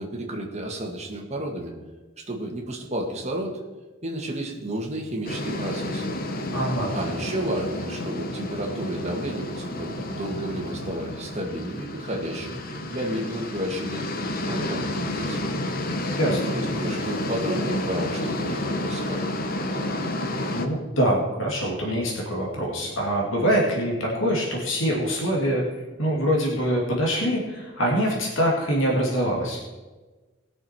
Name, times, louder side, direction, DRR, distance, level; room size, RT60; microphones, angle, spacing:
voice 1, 0.0-1.7 2.2-3.6 4.0-6.1 6.9-12.6 12.9-14.0 14.5-15.4 16.6-19.3, right 1 dB, 35° right, 0 dB, 1.9 m, -31 dB
sound 1, 5.2-20.6, left 1 dB, 45° left, 1.0 m, -30 dB
voice 2, 6.5-6.9 16.1-16.6 20.5-25.6 26.0-29.6, equal, 70° left, -2 dB, 2.4 m, -24 dB
19.5 x 6.6 x 4.5 m, 1.3 s
head